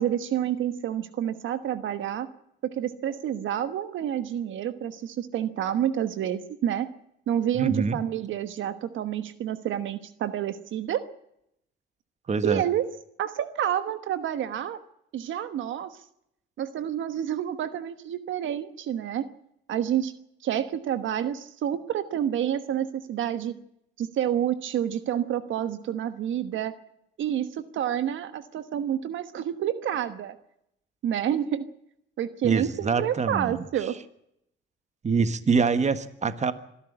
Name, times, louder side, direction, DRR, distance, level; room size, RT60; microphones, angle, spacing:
voice 1, 0.0-2.3 2.6-6.9 7.3-11.0 12.4-12.8 13.2-14.8 15.1-15.9 16.6-19.3 19.7-20.1 20.4-23.5 24.0-26.7 27.2-30.3 31.0-31.7 32.2-34.0, right 10 dB, 75° right, 12 dB, 1.2 m, -28 dB
voice 2, 7.5-8.0 12.3-12.6 32.4-33.6 35.0-36.5, right 5 dB, 35° right, 12 dB, 1.5 m, -25 dB
25.5 x 11.5 x 9.8 m, 0.78 s
cardioid pair, 90°, 20 cm